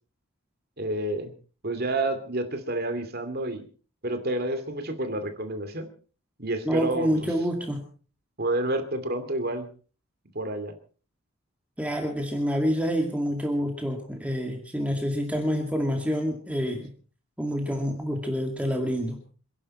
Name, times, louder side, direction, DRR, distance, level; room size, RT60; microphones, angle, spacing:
voice 1, 0.8-1.3 1.6-3.6 4.0-5.9 6.4-7.3 8.4-9.7 10.3-10.7, right 1 dB, 45° right, 8 dB, 2.6 m, -29 dB
voice 2, 6.7-7.8 11.8-16.8 17.4-19.2, equal, 5° right, 2 dB, 2.2 m, -27 dB
28.0 x 11.0 x 4.3 m, 0.39 s
head